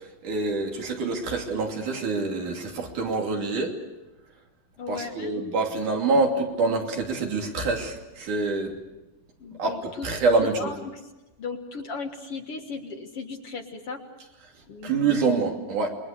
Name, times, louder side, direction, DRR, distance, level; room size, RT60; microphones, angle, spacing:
voice 1, 0.2-3.8 4.9-8.7 9.6-10.7 14.8-15.9, right 3 dB, 70° right, 1 dB, 4.3 m, -26 dB
voice 2, 4.8-5.4 9.4-11.1 11.4-14.0 14.7-15.4, left 4 dB, 50° left, 4 dB, 2.2 m, -37 dB
28.0 x 22.5 x 6.8 m, 1.0 s
omnidirectional pair, 3.8 m